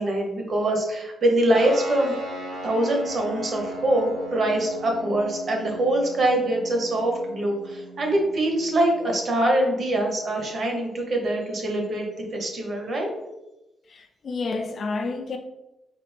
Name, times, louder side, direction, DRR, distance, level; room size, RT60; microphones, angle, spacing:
voice 1, 0.0-2.2 2.6-12.1 12.3-13.1, right 1 dB, 40° right, 0.8 m, -24 dB
sound 1, 1.5-12.4, right 1 dB, 75° right, 1.1 m, -39 dB
voice 2, 13.9-15.4, left 3 dB, 40° left, 0.4 m, -30 dB
4.1 x 2.5 x 3.2 m
wide cardioid pair, 160°, 0 cm